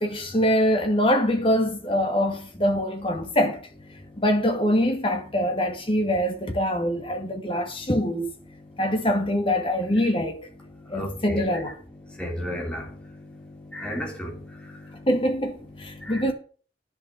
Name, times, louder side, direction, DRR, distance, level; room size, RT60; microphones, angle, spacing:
voice 1, 0.0-3.6 4.2-8.3 8.8-10.5 10.9-11.8 15.1-16.3, equal, 30° left, 2.0 m, -24 dB
voice 2, 10.9-11.4 12.2-12.9 13.7-14.4 16.0-16.2, equal, 5° left, 3.2 m, -32 dB
10.5 x 5.7 x 8.2 m
head